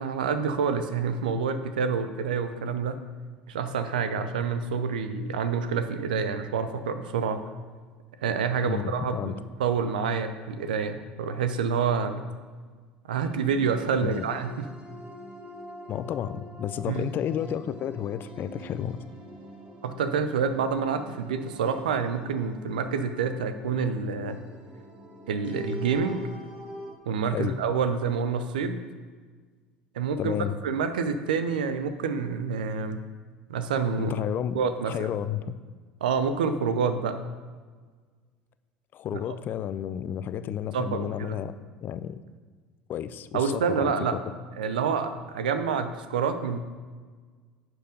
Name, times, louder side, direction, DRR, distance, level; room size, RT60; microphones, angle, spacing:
voice 1, 0.0-3.0 3.5-7.4 8.2-12.2 13.1-14.7 16.9-17.1 19.8-24.4 25.3-26.2 27.1-28.8 29.9-30.3 30.6-33.0 33.5-34.1 34.5-35.1 36.0-37.2 39.1-39.2 40.7-41.4 43.3-44.2 44.6-46.6, right 6 dB, 75° right, 10 dB, 0.6 m, -27 dB
voice 2, 8.6-9.4 14.0-14.2 15.9-19.0 27.3-27.6 30.2-30.5 34.0-34.6 34.8-35.6 38.9-41.5 41.8-42.2 42.9-44.2, left 10 dB, 45° left, 13 dB, 0.5 m, -31 dB
sound 1, 13.2-27.0, equal, 20° right, 1.6 m, -44 dB
10.0 x 4.8 x 5.1 m, 1.5 s
hypercardioid pair, 70°, 5 cm